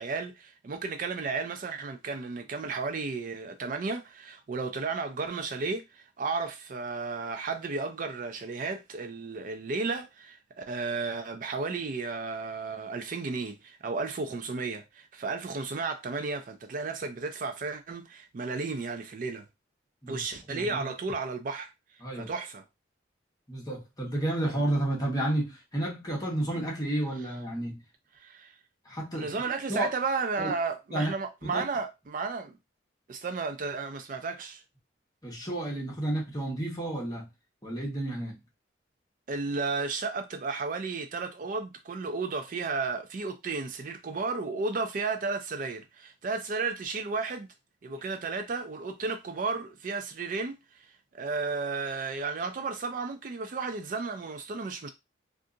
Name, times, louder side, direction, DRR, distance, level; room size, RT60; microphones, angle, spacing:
voice 1, 0.0-19.4 20.1-21.7 22.1-22.6 28.2-28.6 29.1-32.6 33.1-34.6 39.3-47.5 47.8-50.9 51.1-54.9, right 4 dB, 45° right, 0.4 m, -33 dB
voice 2, 20.5-20.9 22.0-22.3 23.5-27.8 28.8-29.3 29.7-29.9 30.4-30.5 30.9-31.1 31.4-31.6 35.2-37.3 37.6-38.4, right 1 dB, 20° left, 1.1 m, -31 dB
2.6 x 2.4 x 3.7 m
head